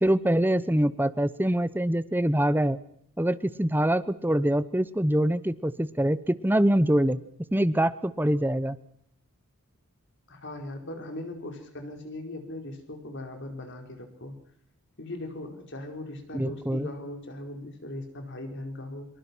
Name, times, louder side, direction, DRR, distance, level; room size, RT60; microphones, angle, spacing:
voice 1, 0.0-2.8 3.2-7.2 7.5-8.8 16.3-16.9, right 1 dB, 10° right, 15 dB, 0.8 m, -24 dB
voice 2, 10.3-14.3 15.0-19.1, left 1 dB, 55° left, 4 dB, 4.8 m, -39 dB
26.0 x 23.0 x 6.2 m, 0.68 s
head